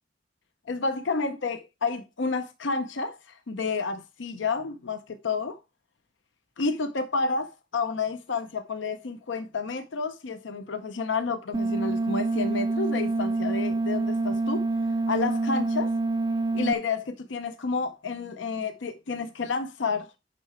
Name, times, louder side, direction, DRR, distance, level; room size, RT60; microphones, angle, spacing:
voice 1, 0.7-5.6 6.6-14.6 15.1-15.9 16.5-20.2, left 4 dB, 75° left, 0.7 m, -30 dB
sound 1, 11.5-16.7, right 2 dB, 20° right, 0.4 m, -26 dB
7.8 x 5.7 x 4.3 m
head